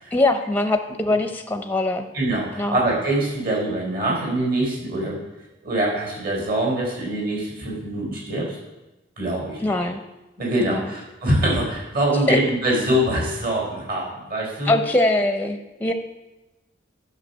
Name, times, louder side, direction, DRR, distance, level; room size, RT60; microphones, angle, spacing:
voice 1, 0.1-2.1 2.6-2.8 9.6-10.0 10.6-10.9 12.3-12.4 14.6-15.9, left 2 dB, 10° left, 6 dB, 0.6 m, -22 dB
voice 2, 2.1-5.2 5.6-8.6 9.2-9.7 10.4-14.7, right 1 dB, 55° right, -2 dB, 3.8 m, -24 dB
11.0 x 6.7 x 5.5 m, 1.0 s
head